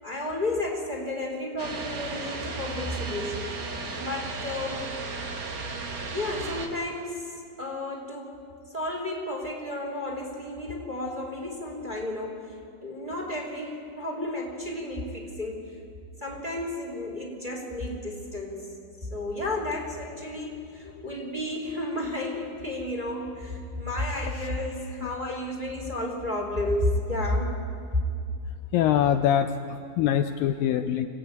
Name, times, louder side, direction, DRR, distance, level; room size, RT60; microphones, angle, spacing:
voice 1, 0.0-3.6 4.0-4.9 6.1-8.4 8.7-12.6 12.8-15.7 16.2-18.7 19.0-27.5 27.9-28.0 30.7-30.9, left 1 dB, 15° right, -1 dB, 2.9 m, -32 dB
sound 1, 1.6-6.7, right 3 dB, 50° right, 2.7 m, -35 dB
voice 2, 28.7-31.1, left 10 dB, 80° left, 7 dB, 2.2 m, -24 dB
25.5 x 16.0 x 9.2 m, 2.4 s
omnidirectional pair, 4.4 m